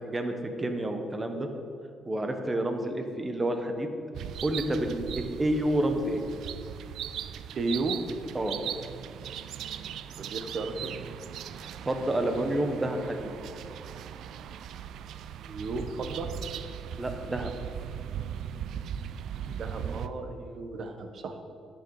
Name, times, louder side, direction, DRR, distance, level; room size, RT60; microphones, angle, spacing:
voice 1, 0.0-1.5 2.1-3.9 4.4-6.2 8.3-8.6 11.8-13.2 17.0-17.5, right 1 dB, 20° right, 6 dB, 1.1 m, -29 dB
sound 1, 4.1-20.1, right 9 dB, 75° right, 0.3 m, -39 dB
voice 2, 7.5-8.0 10.2-11.0 15.4-16.3 19.5-21.4, right 3 dB, 60° right, 6 dB, 1.0 m, -34 dB
11.5 x 6.6 x 4.8 m, 2.5 s
cardioid pair, 90°, 0 cm